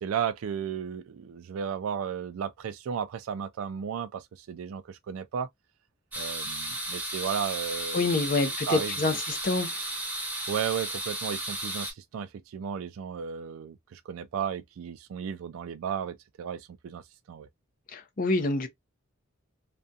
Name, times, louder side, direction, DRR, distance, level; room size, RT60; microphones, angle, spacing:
voice 1, 0.0-5.5 6.2-8.1 8.4-9.2 10.5-17.0 17.3-17.5, right 7 dB, 85° right, 0.3 m, -34 dB
sound 1, 6.1-11.9, right 1 dB, 10° right, 0.9 m, -34 dB
voice 2, 7.9-9.8 17.9-18.7, left 3 dB, 40° left, 0.5 m, -27 dB
2.4 x 2.2 x 2.6 m
head